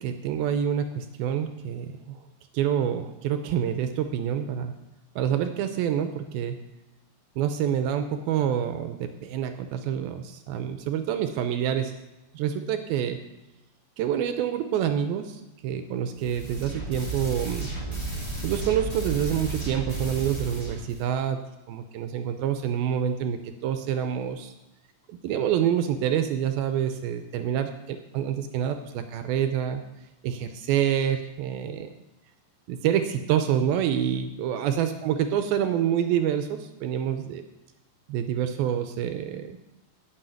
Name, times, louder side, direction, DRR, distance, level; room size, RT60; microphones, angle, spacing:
voice 1, 0.0-2.2 2.5-4.7 5.2-6.6 7.4-11.9 12.3-13.2 14.0-17.7 18.4-21.4 21.7-24.5 25.1-29.8 30.2-31.9 32.7-37.4 38.1-39.6, right 9 dB, 80° right, 8 dB, 2.2 m, -27 dB
sound 1, 16.2-21.0, right 3 dB, 10° left, 1.6 m, -33 dB
9.7 x 6.9 x 9.1 m, 1.0 s
omnidirectional pair, 4.9 m